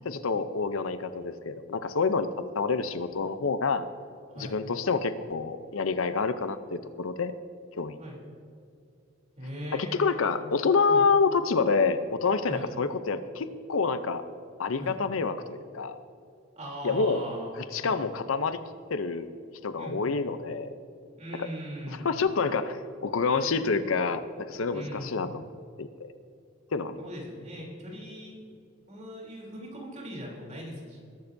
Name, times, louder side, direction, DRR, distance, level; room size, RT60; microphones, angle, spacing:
voice 1, 0.0-3.8 4.4-7.3 7.8-8.0 9.7-14.2 14.6-16.0 16.8-17.2 17.7-18.6 18.9-19.3 19.6-20.7 22.0-25.5 25.8-26.1 26.7-27.0, left 4 dB, 85° left, 11 dB, 0.6 m, -27 dB
voice 2, 4.3-4.6 8.0-8.2 9.4-10.3 10.9-11.0 12.5-12.7 14.8-15.0 16.5-18.0 19.8-20.2 21.2-22.1 24.7-25.3 27.0-28.4 28.9-31.0, equal, 35° right, -2 dB, 3.3 m, -40 dB
20.5 x 11.5 x 2.7 m, 2.5 s
head